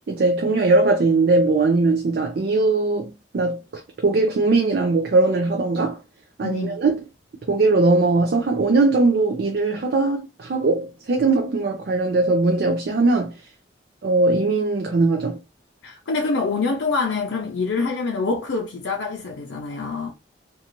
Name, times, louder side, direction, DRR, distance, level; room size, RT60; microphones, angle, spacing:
voice 1, 0.1-6.0 6.4-7.0 7.5-13.4 14.0-15.4, right 3 dB, 60° right, 0.4 m, -20 dB
voice 2, 6.4-6.8 15.8-20.1, left 4 dB, 85° left, 0.5 m, -25 dB
2.6 x 2.3 x 2.8 m
head